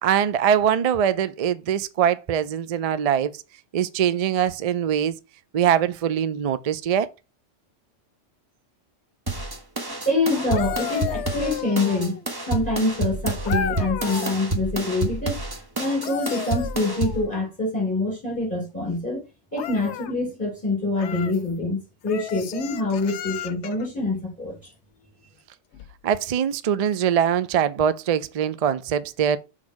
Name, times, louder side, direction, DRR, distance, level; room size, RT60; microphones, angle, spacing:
voice 1, 0.0-3.3 3.7-5.2 5.5-7.1 26.0-29.4, right 9 dB, 65° right, 0.3 m, -22 dB
sound 1, 9.3-17.3, right 2 dB, 20° right, 1.1 m, -29 dB
voice 2, 9.9-12.2 12.5-15.4 15.8-24.7, left 2 dB, 15° left, 3.8 m, -25 dB
sound 2, 10.3-12.3 13.5-14.4 15.8-17.4 19.5-20.1 21.0-21.4 22.1-23.9 25.7-25.9, left 9 dB, 70° left, 0.9 m, -33 dB
6.2 x 3.8 x 4.7 m
omnidirectional pair, 1.3 m